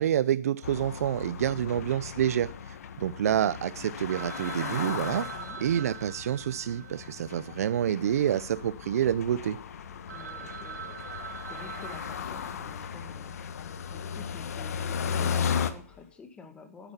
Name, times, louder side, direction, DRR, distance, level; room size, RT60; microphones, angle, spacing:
voice 1, 0.0-5.3 5.6-9.6, right 10 dB, 70° right, 0.6 m, -28 dB
sound 1, 0.6-15.7, left 7 dB, 70° left, 1.5 m, -36 dB
voice 2, 1.5-2.2 5.3-5.6 10.1-16.9, left 4 dB, 10° left, 1.9 m, -50 dB
Telephone, 4.1-8.4 8.7-8.8 9.3-9.4 9.8-9.9 10.1-13.0, right 7 dB, 90° right, 2.1 m, -43 dB
sound 2, 8.1-16.2, left 9 dB, 50° left, 3.9 m, -55 dB
11.5 x 10.0 x 5.7 m
hypercardioid pair, 155°, 9 cm